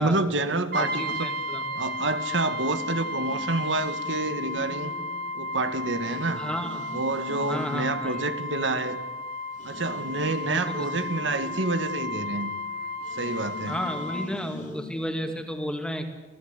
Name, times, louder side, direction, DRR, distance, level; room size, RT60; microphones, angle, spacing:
voice 1, 0.0-1.3 1.8-4.9 5.3-6.4 6.9-9.0 9.6-12.5 13.1-13.8, right 2 dB, 80° right, 10 dB, 1.8 m, -28 dB
Brass instrument, 0.7-14.3, left 1 dB, 55° right, 1.3 m, -34 dB
sound 1, 0.8-2.0 2.6-9.0 9.5-15.5, left 2 dB, 45° left, 3.5 m, -45 dB
voice 2, 0.8-1.6 6.3-6.9 7.4-8.2 10.4-10.9 13.7-16.1, equal, 5° left, 4 dB, 2.4 m, -32 dB
27.0 x 17.0 x 8.1 m, 1.2 s
head